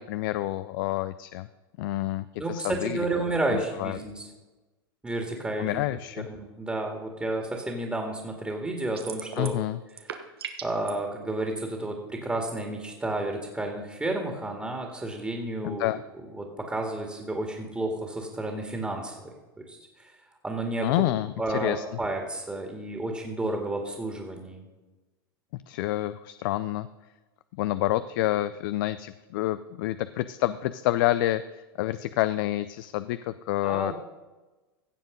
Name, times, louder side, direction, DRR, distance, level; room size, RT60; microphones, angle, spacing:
voice 1, 0.0-1.5 1.8-3.1 3.5-4.0 5.6-6.3 9.4-9.8 15.6-16.0 20.8-21.8 25.5-26.9 27.6-33.9, left 15 dB, 65° left, 14 dB, 0.4 m, -28 dB
voice 2, 2.4-4.3 5.0-5.8 6.3-9.6 10.6-15.9 16.4-19.3 19.7-20.1 20.4-20.9 21.4-24.7 33.6-33.9, right 2 dB, 10° right, 2 dB, 2.1 m, -31 dB
sound 1, 9.0-9.6 9.9-10.9, right 8 dB, 85° right, 1.2 m, -38 dB
16.0 x 7.3 x 5.2 m, 1.2 s
hypercardioid pair, 105°, 13 cm